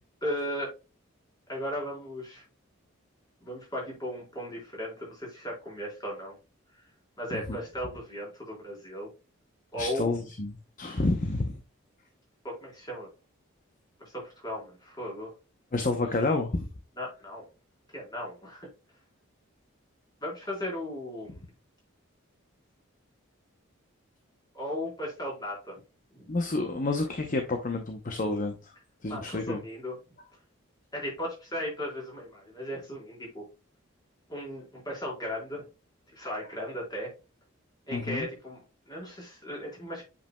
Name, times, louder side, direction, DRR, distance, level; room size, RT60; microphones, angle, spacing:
voice 1, 0.2-0.7 1.5-2.4 3.4-6.4 7.2-9.1 9.7-10.1 12.4-13.1 14.1-15.3 17.0-17.5 17.9-18.7 20.2-21.5 24.5-25.7 26.1-26.3 29.1-30.0 30.9-33.4 34.3-35.7 36.1-37.1 37.9-40.0, equal, 20° left, -3 dB, 3.9 m, -36 dB
voice 2, 9.8-11.5 15.7-16.7 26.3-28.7 29.0-29.6 37.9-38.3, left 2 dB, 40° left, 5 dB, 0.7 m, -29 dB
8.5 x 5.2 x 2.2 m, 0.29 s
head